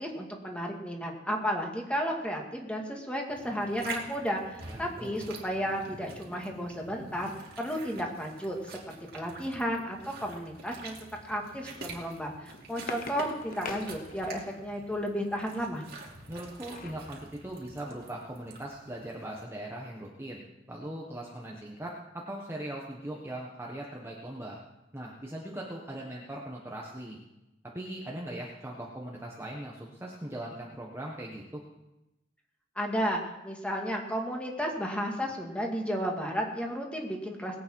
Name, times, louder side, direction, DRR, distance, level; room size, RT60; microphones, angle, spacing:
voice 1, 0.0-7.3 7.6-11.0 11.3-15.9 32.8-37.6, equal, 5° left, 0 dB, 2.1 m, -33 dB
sound 1, 3.3-19.4, right 3 dB, 55° right, 2.8 m, -46 dB
voice 2, 4.7-5.2 16.3-20.4 20.7-24.6 24.9-27.2 27.7-31.6, right 1 dB, 15° right, -2 dB, 1.3 m, -40 dB
sound 2, 12.5-14.7 16.2-17.1 17.6-17.7 18.0-18.2, left 3 dB, 50° left, 1.1 m, -43 dB
20.5 x 8.7 x 4.7 m, 0.95 s
head